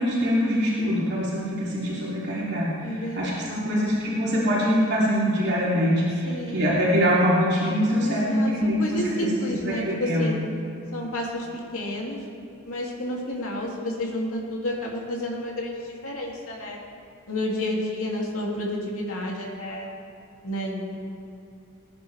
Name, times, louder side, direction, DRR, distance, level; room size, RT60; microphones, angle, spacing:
voice 1, 0.0-10.3, equal, 50° right, -7 dB, 2.9 m, -24 dB
voice 2, 2.8-3.9 6.2-6.8 8.0-10.4 10.9-12.2 12.6-16.8 17.3-19.9 20.4-21.0, left 1 dB, 80° left, -2 dB, 2.6 m, -30 dB
20.0 x 10.0 x 3.4 m, 2.7 s
head